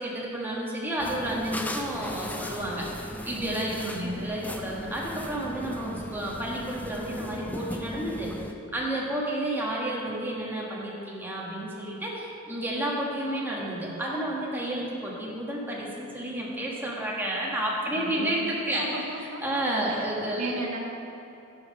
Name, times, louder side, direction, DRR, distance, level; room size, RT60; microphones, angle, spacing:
voice 1, 0.0-2.9 3.2-8.3 8.7-20.5, right 1 dB, 10° right, -4 dB, 1.4 m, -31 dB
sound 1, 1.0-8.5, left 1 dB, 5° left, 0.3 m, -37 dB
voice 2, 3.8-4.3 17.9-19.6 19.9-20.1 20.3-20.8, right 2 dB, 75° right, -1 dB, 1.2 m, -36 dB
11.0 x 5.8 x 5.4 m, 2.8 s
head